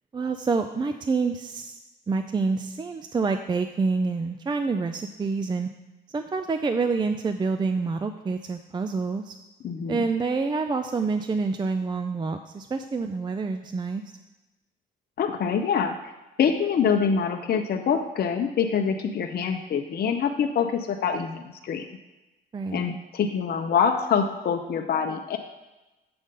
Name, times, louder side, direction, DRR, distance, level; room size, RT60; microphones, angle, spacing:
voice 1, 0.1-1.8 2.1-5.7 6.1-9.3 9.9-14.0 22.5-22.9, right 4 dB, 25° right, 7 dB, 0.4 m, -27 dB
voice 2, 9.6-10.1 15.2-16.0 16.4-21.8 22.7-25.4, left 6 dB, 55° left, 4 dB, 0.7 m, -25 dB
7.7 x 3.7 x 6.6 m, 1.0 s
cardioid pair, 90°, 20 cm